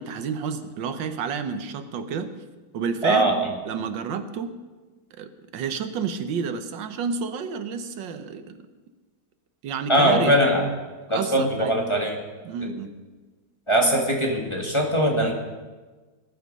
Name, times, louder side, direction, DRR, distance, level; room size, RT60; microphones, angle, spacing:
voice 1, 0.0-2.3 2.7-3.3 3.6-4.5 5.2-8.6 9.6-10.4 11.1-11.7 12.4-12.9, right 6 dB, 65° right, 9 dB, 1.6 m, -30 dB
voice 2, 3.0-3.5 9.9-10.7 11.1-12.2 12.6-12.7 13.7-15.3, equal, 15° left, 0 dB, 1.6 m, -21 dB
19.5 x 9.5 x 5.4 m, 1.3 s
omnidirectional pair, 2.2 m